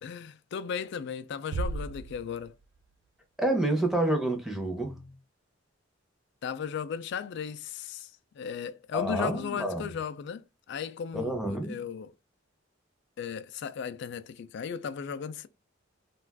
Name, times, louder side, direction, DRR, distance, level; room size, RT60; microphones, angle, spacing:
voice 1, 0.0-2.6 6.4-8.1 8.3-12.1 13.2-15.5, left 7 dB, 65° left, 0.3 m, -36 dB
Bass drum, 1.5-3.0, right 3 dB, 65° right, 0.3 m, -35 dB
voice 2, 3.4-5.1 8.9-9.9 11.1-11.8, right 1 dB, ahead, 0.6 m, -28 dB
2.3 x 2.3 x 3.3 m
head